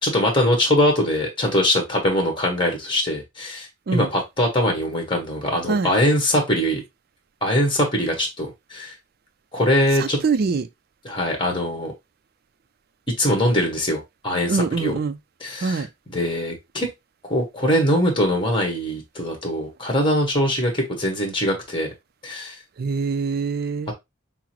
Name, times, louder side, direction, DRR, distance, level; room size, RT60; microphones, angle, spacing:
voice 1, 0.0-6.8 7.4-8.9 9.5-10.2 11.0-11.9 13.2-14.9 15.4-15.8 16.1-16.9 17.3-21.9 22.2-22.6, left 1 dB, 25° left, 1.3 m, -22 dB
voice 2, 9.9-10.7 14.5-15.2 15.6-15.9 22.8-23.9, right 4 dB, 45° right, 0.4 m, -24 dB
5.9 x 2.0 x 2.9 m
head